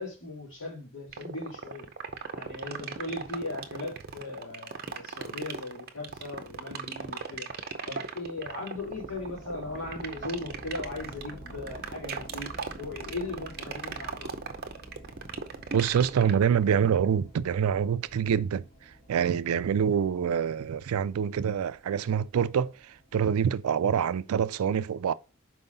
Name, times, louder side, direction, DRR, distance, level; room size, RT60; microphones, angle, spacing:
voice 1, 0.0-1.9 2.3-7.5 7.8-12.5 12.8-14.3, left 2 dB, 65° left, 3.0 m, -38 dB
sound 1, 1.1-17.1, right 5 dB, 45° right, 0.6 m, -37 dB
sound 2, 8.8-24.1, right 1 dB, 30° left, 1.7 m, -50 dB
voice 2, 15.7-18.6 19.1-22.7 23.1-25.1, right 7 dB, 85° right, 0.4 m, -26 dB
5.5 x 4.8 x 3.9 m
head